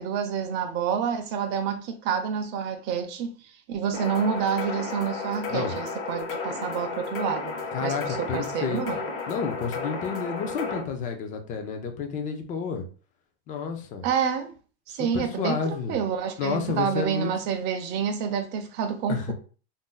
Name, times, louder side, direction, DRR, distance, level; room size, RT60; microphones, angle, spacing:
voice 1, 0.0-9.0 14.0-14.5 14.9-19.3, right 7 dB, 35° right, 0.5 m, -28 dB
sound 1, 3.9-10.8, left 4 dB, 45° left, 0.9 m, -33 dB
voice 2, 7.7-8.8 9.3-12.8 13.5-14.1 14.9-16.0 16.4-17.3 19.1-19.3, left 5 dB, 25° left, 0.4 m, -30 dB
2.6 x 2.1 x 3.7 m
supercardioid pair, 155°, 32 cm